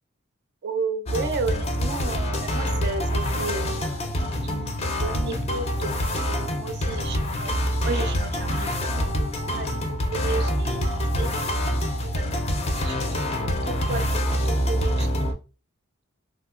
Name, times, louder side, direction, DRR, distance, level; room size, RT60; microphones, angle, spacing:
voice 1, 0.6-4.1 4.4-7.5 7.8-11.3 12.0-12.4 12.8-14.1 14.4-15.4, right 4 dB, 55° right, 8 dB, 0.4 m, -33 dB
sound 1, 1.1-15.3, equal, 30° left, 0.4 m, -26 dB
3.5 x 2.6 x 2.4 m, 0.33 s
head